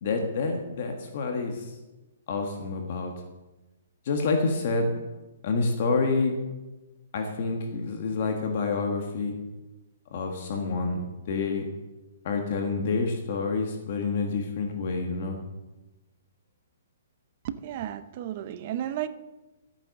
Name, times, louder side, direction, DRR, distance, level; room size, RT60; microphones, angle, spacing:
voice 1, 0.0-1.8 2.3-3.1 4.0-4.9 5.4-6.3 7.1-9.3 10.1-11.7 12.2-15.4, left 4 dB, 40° left, 3 dB, 1.6 m, -28 dB
voice 2, 17.4-19.1, right 11 dB, 30° right, 13 dB, 0.7 m, -33 dB
13.0 x 8.9 x 6.5 m, 1.1 s
hypercardioid pair, 175°, 0 cm